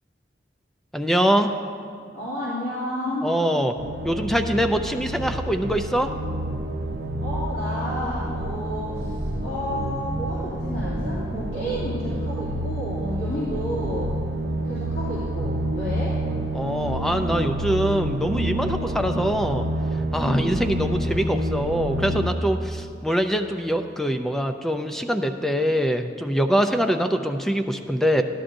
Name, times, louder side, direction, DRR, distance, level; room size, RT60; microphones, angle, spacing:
voice 1, 0.9-1.5 3.2-3.8 4.0-6.1 16.5-19.6 20.1-28.2, equal, ahead, 6 dB, 0.3 m, -23 dB
voice 2, 2.1-3.3 7.2-14.1 14.6-16.2 20.2-20.8 26.5-26.9, equal, 75° left, -11 dB, 2.5 m, -31 dB
sound 1, 3.8-22.3, right 1 dB, 85° right, 0.6 m, -28 dB
14.5 x 11.0 x 2.6 m, 2.3 s
head